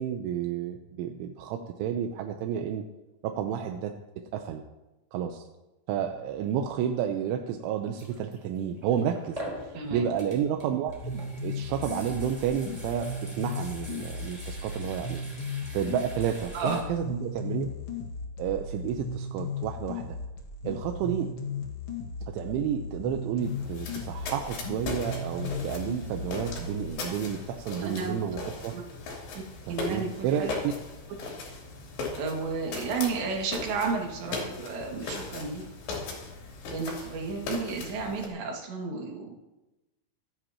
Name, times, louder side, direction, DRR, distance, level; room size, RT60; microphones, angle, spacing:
voice 1, 0.0-2.8 3.2-3.9 4.3-4.6 5.1-5.4 5.9-15.2 15.7-17.7 18.4-20.2 20.6-21.3 22.3-28.7 29.7-30.7, right 9 dB, 85° right, 3 dB, 3.2 m, -31 dB
sound 1, 7.9-16.8, equal, 10° right, 3.2 m, -44 dB
voice 2, 9.7-10.1 16.5-17.1 27.8-28.2 28.7-28.8 29.4-30.6 32.1-35.6 36.7-39.4, right 4 dB, 70° right, 0 dB, 4.1 m, -33 dB
sound 2, 10.9-26.9, left 3 dB, 85° left, 1.2 m, -36 dB
sound 3, 23.4-38.3, left 3 dB, 65° left, 5.4 m, -38 dB
25.0 x 11.0 x 2.9 m, 1.0 s
omnidirectional pair, 5.5 m